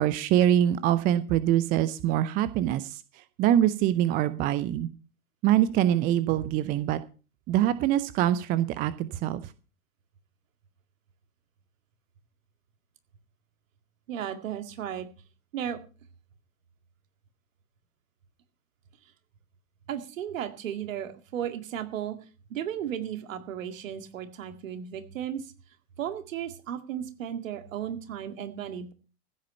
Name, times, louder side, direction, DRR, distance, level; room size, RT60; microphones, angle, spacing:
voice 1, 0.0-3.0 3.4-4.9 5.4-7.0 7.5-9.4, right 12 dB, 20° right, 15 dB, 0.5 m, -24 dB
voice 2, 14.1-15.1 15.5-15.8 19.9-22.2 22.5-25.5 26.0-28.9, right 9 dB, 55° right, 9 dB, 2.1 m, -35 dB
15.0 x 8.8 x 5.5 m, 0.34 s
figure-of-eight pair, 100°, 46 cm